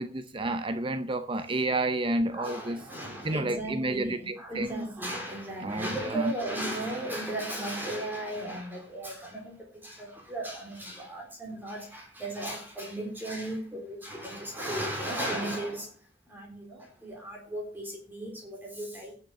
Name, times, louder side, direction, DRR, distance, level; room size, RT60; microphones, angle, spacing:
voice 1, 0.0-2.8 3.2-4.9 5.6-6.3, right 2 dB, 25° right, 0.6 m, -30 dB
voice 2, 2.3-15.9 16.3-19.2, right 1 dB, 10° right, 3.6 m, -36 dB
11.5 x 6.7 x 6.4 m
head